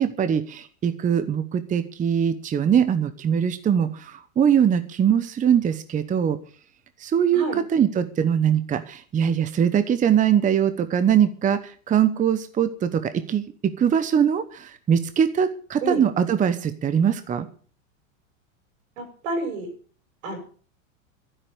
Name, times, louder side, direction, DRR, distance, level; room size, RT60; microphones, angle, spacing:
voice 1, 0.0-6.4 7.0-7.4 7.7-17.5, right 8 dB, 20° right, 11 dB, 1.0 m, -22 dB
voice 2, 19.0-19.7 20.2-20.4, right 2 dB, 75° right, 6 dB, 7.3 m, -29 dB
13.0 x 11.0 x 6.8 m, 0.43 s
supercardioid pair, 130°, 40 cm